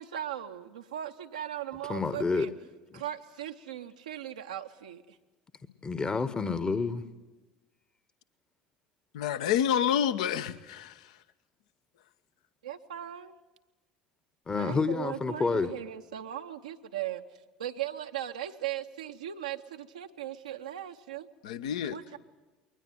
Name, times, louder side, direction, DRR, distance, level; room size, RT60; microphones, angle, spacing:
voice 1, 0.0-2.5 2.9-5.2 12.6-13.4 14.5-17.2 17.6-21.3 21.8-22.2, right 11 dB, 75° right, 0.8 m, -38 dB
voice 2, 1.9-2.5 2.9-3.0 5.8-7.0 14.5-15.7, left 4 dB, 20° left, 1.0 m, -29 dB
voice 3, 9.1-11.1 21.4-22.0, left 9 dB, 65° left, 0.9 m, -28 dB
22.0 x 19.5 x 7.8 m
figure-of-eight pair, 65°, 4 cm